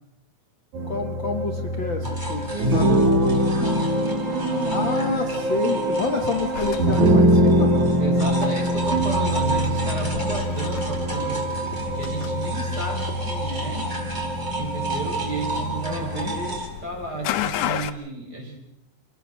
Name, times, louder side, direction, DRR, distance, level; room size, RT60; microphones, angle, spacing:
sound 1, 0.7-16.6, equal, 75° right, 3.8 m, -24 dB
voice 1, 0.9-3.4 4.7-7.7 15.9-16.3, left 4 dB, 45° left, 3 dB, 1.9 m, -29 dB
sound 2, 2.0-16.7, right 2 dB, 15° right, 3.6 m, -33 dB
voice 2, 2.5-5.2 8.0-11.6 12.0-13.9 14.5-18.6, right 3 dB, 30° right, 2 dB, 5.3 m, -33 dB
sound 3, 6.5-17.9, left 11 dB, 85° left, 2.5 m, -35 dB
26.5 x 19.5 x 6.5 m, 0.83 s
omnidirectional pair, 3.4 m